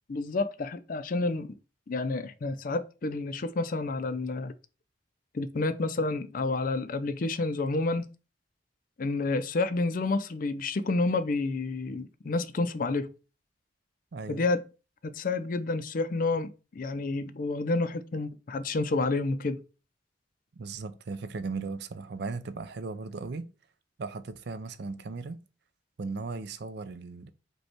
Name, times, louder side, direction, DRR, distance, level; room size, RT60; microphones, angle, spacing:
voice 1, 0.1-1.5 1.9-4.5 5.3-8.1 9.0-13.1 14.3-14.6 15.0-19.6, left 3 dB, 45° left, 0.4 m, -29 dB
voice 2, 14.1-14.5 20.6-23.5 24.0-25.4 26.0-27.3, right 4 dB, 60° right, 0.5 m, -37 dB
5.2 x 2.3 x 4.4 m
head